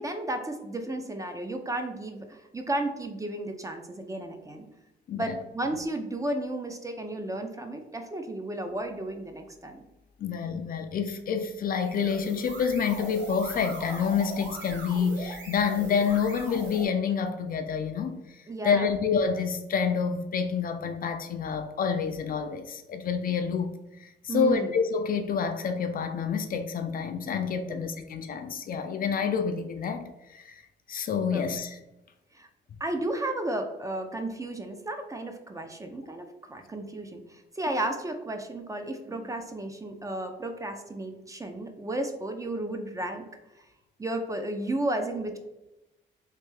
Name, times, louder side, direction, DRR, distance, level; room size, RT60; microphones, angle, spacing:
voice 1, 0.0-4.7 5.1-9.8 18.5-18.9 24.3-24.7 27.7-27.8 31.3-31.4 32.3-32.5 32.8-43.2 44.0-45.4, right 1 dB, 15° right, 5 dB, 0.4 m, -33 dB
voice 2, 10.2-23.7 24.0-30.6 30.9-31.8, left 6 dB, 45° left, 7 dB, 0.4 m, -28 dB
sound 1, 11.6-16.9, right 2 dB, 70° right, 1.4 m, -40 dB
3.3 x 2.5 x 3.2 m, 0.94 s
cardioid pair, 90°, 20 cm